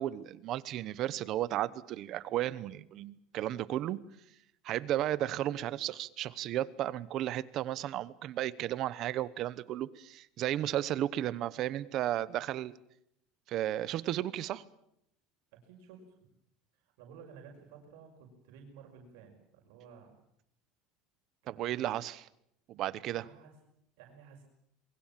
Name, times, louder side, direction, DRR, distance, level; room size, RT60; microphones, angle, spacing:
voice 1, 0.0-4.0 4.6-12.7 13.5-14.6 21.5-22.2 22.7-23.2, right 13 dB, 40° right, 17 dB, 0.9 m, -34 dB
voice 2, 15.5-16.3 16.8-20.1 21.4-21.9 23.2-23.5 24.0-24.4, right 6 dB, 75° right, 0 dB, 5.8 m, -54 dB
27.0 x 22.5 x 7.5 m, 0.74 s
cardioid pair, 175°, 0 cm